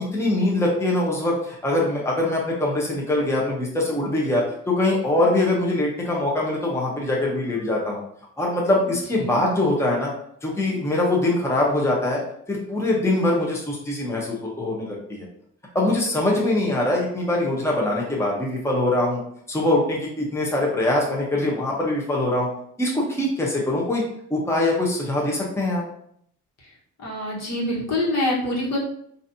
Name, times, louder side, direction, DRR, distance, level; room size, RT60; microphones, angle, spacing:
voice 1, 0.0-8.0 8.4-10.1 10.4-12.2 12.5-15.3 15.7-19.2 19.5-22.5 22.8-24.0 24.3-25.8, left 1 dB, 10° left, -3 dB, 0.9 m, -23 dB
voice 2, 9.1-9.5 27.0-28.8, left 1 dB, 60° left, -3 dB, 1.4 m, -25 dB
3.9 x 2.7 x 2.7 m, 0.68 s
cardioid pair, 90°, 30 cm